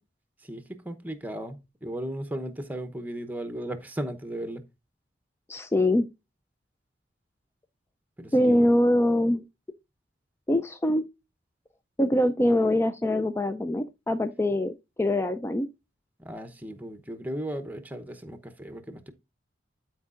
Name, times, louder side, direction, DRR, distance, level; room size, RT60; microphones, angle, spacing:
voice 1, 0.4-4.6 8.2-8.7 16.2-19.1, right 1 dB, 10° right, 0.8 m, -36 dB
voice 2, 5.5-6.1 8.3-9.4 10.5-11.0 12.0-15.7, left 1 dB, 15° left, 0.4 m, -23 dB
12.5 x 4.6 x 2.5 m
head